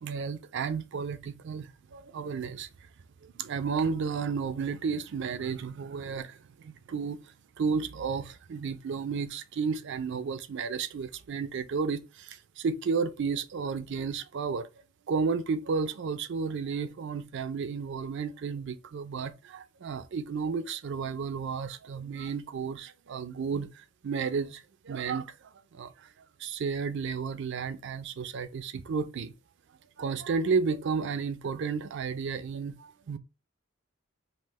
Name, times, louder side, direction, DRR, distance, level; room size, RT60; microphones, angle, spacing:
voice 1, 0.0-2.9 3.2-14.7 15.1-29.3 30.0-33.2, right 5 dB, 60° right, 0.4 m, -32 dB
5.4 x 2.0 x 3.0 m
head